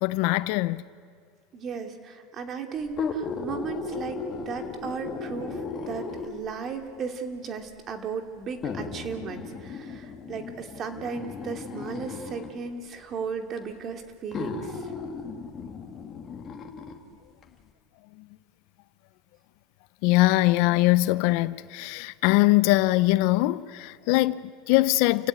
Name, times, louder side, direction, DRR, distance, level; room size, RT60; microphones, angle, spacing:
voice 1, 0.0-0.8 20.0-25.3, left 19 dB, 65° left, 0.7 m, -22 dB
voice 2, 1.5-14.9, right 5 dB, 35° right, 2.7 m, -36 dB
sound 1, 2.9-6.5 7.5-7.6 8.6-12.5 13.6-13.7 14.3-17.0 17.4-17.5, left 5 dB, 30° left, 2.5 m, -35 dB
29.5 x 16.0 x 9.8 m
supercardioid pair, 135°, 0 cm